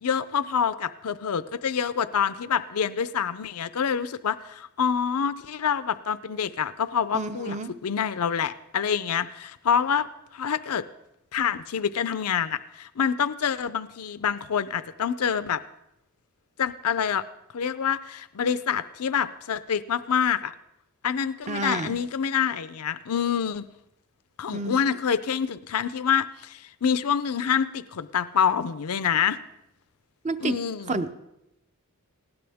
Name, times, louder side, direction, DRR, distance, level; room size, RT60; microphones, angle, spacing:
voice 1, 0.0-10.1 10.3-10.8 11.3-15.6 16.6-17.2 17.5-20.5 21.0-23.7 24.4-29.4 30.4-31.0, left 7 dB, 90° left, 14 dB, 0.5 m, -26 dB
voice 2, 7.1-7.8 21.5-22.0 24.5-24.8 30.2-30.6 30.9-31.1, right 3 dB, 30° right, 10 dB, 0.7 m, -30 dB
19.5 x 16.5 x 3.5 m, 0.86 s
head